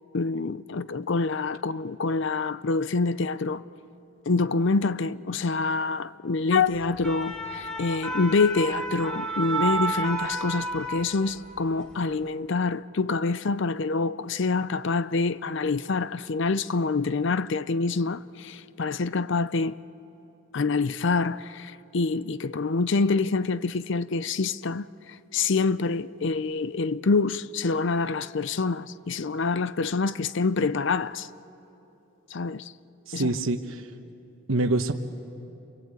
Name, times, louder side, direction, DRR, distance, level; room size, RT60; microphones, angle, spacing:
voice 1, 0.1-3.6 4.3-19.8 20.5-31.3 32.3-32.7 33.1-33.3, left 4 dB, 55° left, 0.5 m, -26 dB
sound 1, 6.8-11.6 11.9-12.1, right 2 dB, 5° left, 1.6 m, -31 dB
voice 2, 33.1-33.9 34.5-34.9, right 2 dB, 70° right, 1.1 m, -26 dB
29.5 x 23.0 x 8.3 m
head